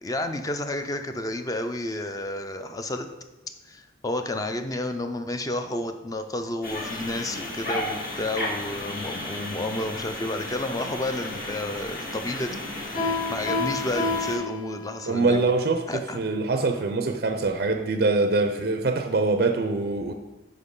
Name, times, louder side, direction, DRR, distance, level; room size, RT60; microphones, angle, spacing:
voice 1, 0.0-3.1 3.7-13.0 13.3-15.4 15.9-16.2, left 1 dB, 20° left, 0.4 m, -31 dB
sound 1, 6.6-14.4, left 1 dB, 50° left, 1.5 m, -34 dB
Piano, 12.9-15.2, left 3 dB, 85° left, 2.7 m, -29 dB
voice 2, 15.1-20.1, right 3 dB, 55° right, 0.4 m, -24 dB
7.9 x 5.4 x 3.7 m
head